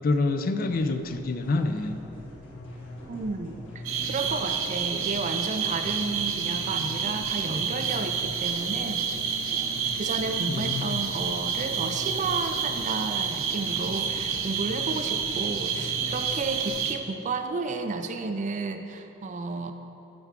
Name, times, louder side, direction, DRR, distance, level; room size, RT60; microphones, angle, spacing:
voice 1, 0.0-2.0 10.5-11.0, left 3 dB, 45° left, 9 dB, 0.4 m, -27 dB
sound 1, 0.7-16.7, left 1 dB, 70° left, 1.6 m, -42 dB
voice 2, 3.1-3.6 4.1-9.1 10.0-19.7, right 3 dB, 40° right, 7 dB, 0.4 m, -32 dB
sound 2, 3.8-16.9, right 6 dB, 85° right, 0.6 m, -29 dB
13.0 x 4.6 x 3.6 m, 2.9 s
head